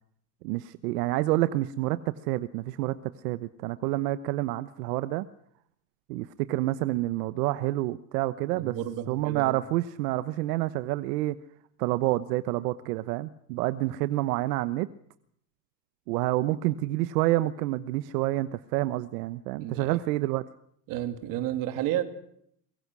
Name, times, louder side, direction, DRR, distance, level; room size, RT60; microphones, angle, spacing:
voice 1, 0.4-5.2 6.1-8.8 9.1-11.4 11.8-14.9 16.1-20.4, right 16 dB, 75° right, 13 dB, 1.1 m, -28 dB
voice 2, 8.5-9.6 19.6-20.0 20.9-22.0, right 12 dB, 45° right, 9 dB, 2.7 m, -31 dB
24.5 x 22.0 x 6.2 m, 0.69 s
cardioid pair, 170°, 48 cm